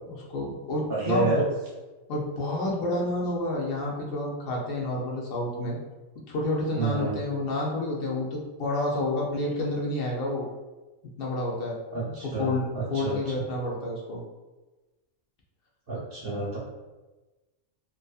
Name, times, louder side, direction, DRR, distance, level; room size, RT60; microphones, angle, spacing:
voice 1, 0.1-1.4 2.1-5.8 6.3-10.5 11.2-14.2, left 1 dB, 60° left, -2 dB, 0.6 m, -29 dB
voice 2, 0.9-1.4 6.8-7.2 11.9-13.2 15.9-16.6, right 3 dB, 55° right, -6 dB, 0.7 m, -29 dB
2.6 x 2.3 x 2.3 m, 1.2 s
omnidirectional pair, 1.3 m